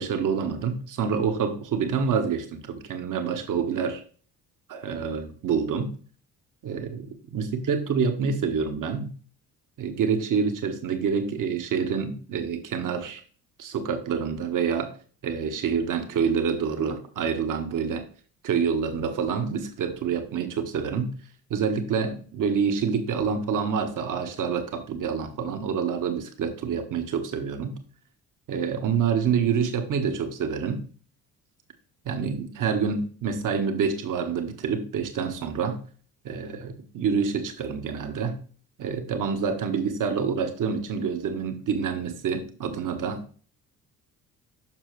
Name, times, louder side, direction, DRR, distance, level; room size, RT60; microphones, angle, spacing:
voice 1, 0.0-4.0 4.7-5.9 6.6-9.1 9.8-13.2 13.6-14.9 15.2-18.1 18.4-21.1 21.5-27.7 28.5-30.8 32.0-35.8 36.2-38.4 38.8-43.2, right 6 dB, 45° right, 7 dB, 1.5 m, -27 dB
7.4 x 6.4 x 3.2 m, 0.42 s
figure-of-eight pair, 50°, 45 cm